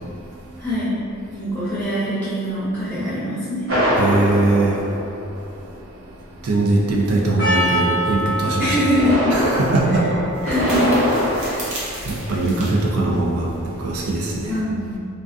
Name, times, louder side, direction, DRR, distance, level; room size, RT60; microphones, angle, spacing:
voice 1, 0.6-0.9 1.3-3.7 8.6-9.4 10.4-10.9 11.4-11.7 14.5-15.0, equal, 10° left, -13 dB, 0.7 m, -23 dB
sound 1, 3.7-5.8 8.7-11.5, equal, 65° right, 1.0 m, -22 dB
voice 2, 4.0-4.8 6.4-8.8 9.3-10.1 12.1-13.5 13.8-14.6, right 2 dB, 90° right, -2 dB, 0.4 m, -20 dB
Percussion, 7.4-12.6, equal, 60° left, 0.6 m, -27 dB
sound 2, 8.8-14.0, right 1 dB, 35° right, 0.6 m, -36 dB
2.4 x 2.3 x 2.5 m, 2.4 s
head